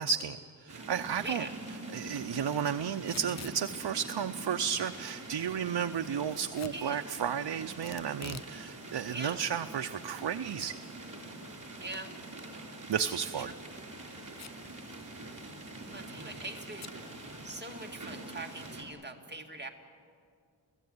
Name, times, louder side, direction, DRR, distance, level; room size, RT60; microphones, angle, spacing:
voice 1, 0.0-1.4 1.9-10.7 12.9-13.5, right 8 dB, 90° right, 8 dB, 0.7 m, -33 dB
sound 1, 0.7-18.8, right 2 dB, 45° right, 4.6 m, -45 dB
Packing tape duct tape / Tearing, 3.0-3.6 6.5-6.8 7.8-8.5 8.9-9.0 9.7-10.3 10.6-10.7 11.1-11.2 13.1-13.4 14.3-14.7 15.0-15.1 15.3-15.7 16.8-17.0, left 7 dB, 40° left, 0.5 m, -46 dB
voice 2, 6.7-7.1 9.1-9.4 11.8-12.1 15.8-16.9 17.4-19.7, right 2 dB, 25° right, 2 dB, 2.3 m, -42 dB
29.5 x 16.0 x 9.5 m, 2.3 s
wide cardioid pair, 100°, 41 cm